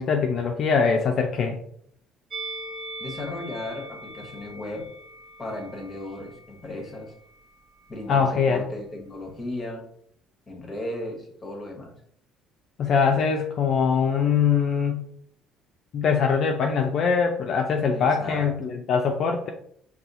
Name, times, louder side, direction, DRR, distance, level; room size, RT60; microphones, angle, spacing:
voice 1, 0.0-1.6 8.1-8.6 12.8-15.0 15.9-19.5, left 6 dB, 45° left, 3 dB, 0.4 m, -22 dB
Musical instrument, 2.3-7.5 7.8-8.0, right 1 dB, 35° right, 0.7 m, -41 dB
voice 2, 3.0-4.9 5.4-7.1 7.9-9.8 10.5-11.9 17.9-18.5, left 2 dB, 20° left, 2 dB, 0.8 m, -35 dB
4.2 x 2.3 x 2.6 m, 0.64 s
cardioid pair, 145°, 0 cm